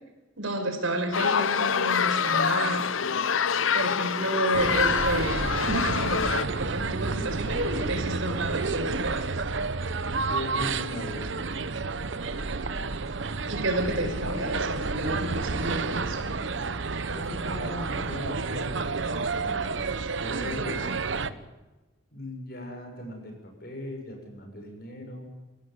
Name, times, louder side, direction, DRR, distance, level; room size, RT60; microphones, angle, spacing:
voice 1, 0.4-2.9 3.7-9.3 13.5-16.3, right 1 dB, 90° right, 5 dB, 5.4 m, -30 dB
sound 1, 1.1-6.5, left 7 dB, 90° left, 0.8 m, -26 dB
sound 2, 4.5-21.3, right 4 dB, 70° right, 1.0 m, -30 dB
voice 2, 10.3-11.6 17.1-19.6 20.2-21.4 22.1-25.3, left 1 dB, 50° left, 3 dB, 7.0 m, -39 dB
25.5 x 17.0 x 9.7 m, 1.2 s
head